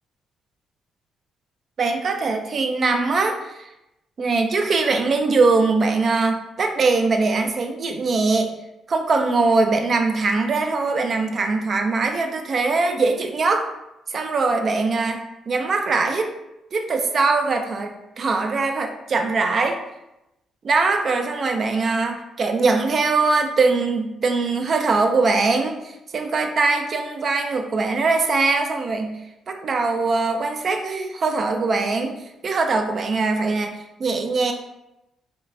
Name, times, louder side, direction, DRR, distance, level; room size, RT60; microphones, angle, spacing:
voice 1, 1.8-3.7 4.2-8.5 8.9-13.7 14.1-16.3 16.7-19.8 20.6-29.2 29.5-32.2 32.4-33.7 34.0-34.5, right 3 dB, 45° right, 5 dB, 0.4 m, -21 dB
3.7 x 2.3 x 2.4 m, 0.90 s
cardioid pair, 90°, 0 cm